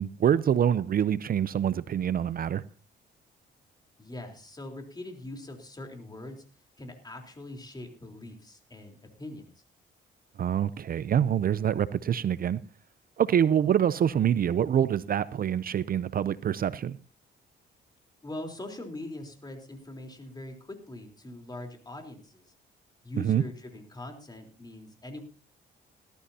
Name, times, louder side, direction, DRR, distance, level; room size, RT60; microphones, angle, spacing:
voice 1, 0.0-2.6 10.4-12.6 13.2-17.0 23.2-23.4, right 9 dB, 45° right, 0.5 m, -25 dB
voice 2, 4.0-6.4 6.8-9.5 18.2-22.5 23.0-25.2, left 1 dB, 20° left, 3.7 m, -42 dB
19.0 x 13.0 x 2.8 m
cardioid pair, 90°, 20 cm